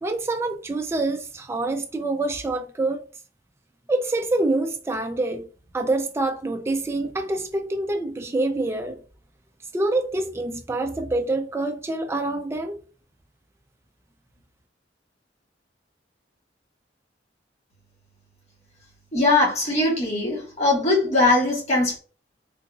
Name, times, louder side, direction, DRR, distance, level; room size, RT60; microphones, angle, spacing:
voice 1, 0.0-3.1 3.9-5.5 5.7-9.0 9.7-12.8, right 2 dB, 15° right, 0.3 m, -26 dB
voice 2, 19.1-22.0, left 2 dB, 40° left, 1.4 m, -21 dB
3.8 x 2.7 x 2.3 m
head